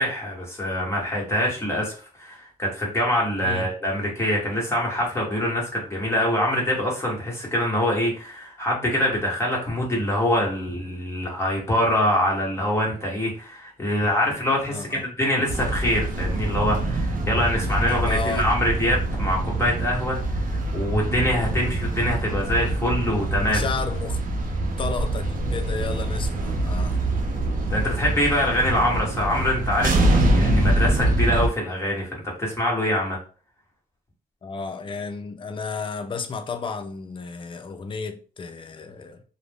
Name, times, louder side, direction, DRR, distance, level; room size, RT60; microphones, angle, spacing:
voice 1, 0.0-20.2 20.4-23.6 27.7-33.2, left 1 dB, 15° left, 1.1 m, -24 dB
voice 2, 3.4-3.7 14.7-15.0 17.7-18.5 23.4-24.2 24.8-27.0 34.4-39.2, left 4 dB, 35° left, 0.4 m, -32 dB
sound 1, 15.5-31.5, right 1 dB, 65° right, 0.6 m, -24 dB
2.4 x 2.0 x 3.4 m
cardioid pair, 80°, 15 cm